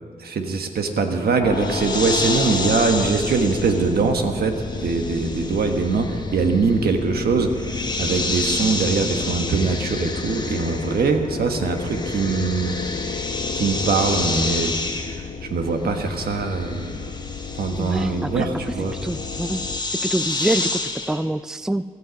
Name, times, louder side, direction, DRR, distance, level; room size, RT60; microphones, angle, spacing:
voice 1, 0.2-12.7 13.5-14.7 15.0-17.1 17.5-19.0, right 4 dB, 80° right, 4 dB, 1.4 m, -22 dB
sound 1, 1.4-19.8, left 5 dB, 65° left, 0.8 m, -32 dB
sound 2, 1.5-11.3 11.5-21.2, left 2 dB, 25° left, 1.2 m, -30 dB
voice 2, 17.8-18.8 19.0-19.6 19.9-21.8, right 1 dB, 5° right, 14 dB, 0.4 m, -26 dB
16.5 x 12.5 x 5.2 m, 2.1 s
cardioid pair, 75°, 16 cm